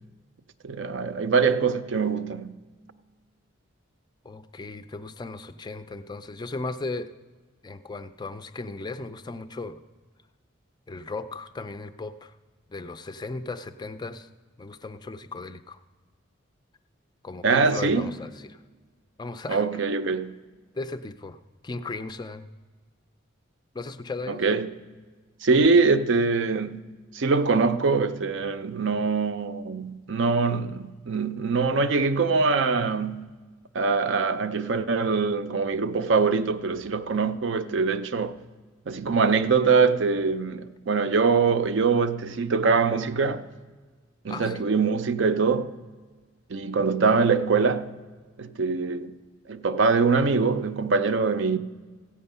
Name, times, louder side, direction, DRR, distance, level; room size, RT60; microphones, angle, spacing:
voice 1, 0.6-2.5 17.4-18.1 19.5-20.3 24.3-24.8 25.4-26.8 27.1-33.3 33.7-38.4 38.9-43.5 44.2-45.7 46.5-47.9 48.4-49.1 49.5-51.6, right 4 dB, 60° right, 0.5 m, -23 dB
voice 2, 4.2-7.1 7.6-9.8 10.9-12.3 12.7-14.3 14.6-15.8 17.2-18.6 19.2-19.6 20.7-21.4 21.6-22.5 23.7-24.4 44.3-44.7, left 3 dB, 20° left, 0.4 m, -36 dB
15.0 x 8.7 x 5.5 m
head